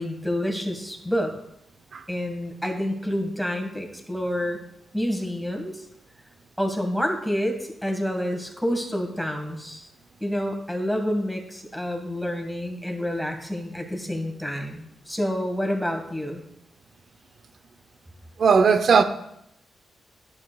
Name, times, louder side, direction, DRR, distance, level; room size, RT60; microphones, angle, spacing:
voice 1, 0.0-1.3 2.1-4.6 4.9-5.8 6.6-9.9 10.2-16.4, equal, ahead, 1.8 m, -28 dB
voice 2, 18.4-19.0, right 5 dB, 60° right, 0.6 m, -17 dB
10.5 x 7.9 x 2.4 m
cardioid pair, 75°, 0 cm